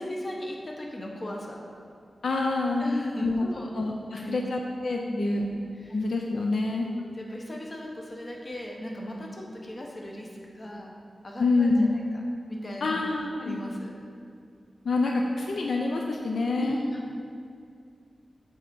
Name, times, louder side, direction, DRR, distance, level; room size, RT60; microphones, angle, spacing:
voice 1, 0.0-1.6 2.8-3.7 4.1-4.5 5.1-5.5 5.8-6.0 6.8-11.0 11.2-12.2 12.5-13.1 13.4-13.9 16.6-17.1, equal, 35° left, -1 dB, 0.8 m, -37 dB
voice 2, 2.2-2.9 3.2-3.4 3.7-5.4 5.9-6.9 11.4-12.0 12.8-13.6 14.8-16.8, left 3 dB, 70° left, 1 dB, 0.4 m, -26 dB
7.3 x 3.4 x 5.3 m, 2.3 s
wide cardioid pair, 140°, 0 cm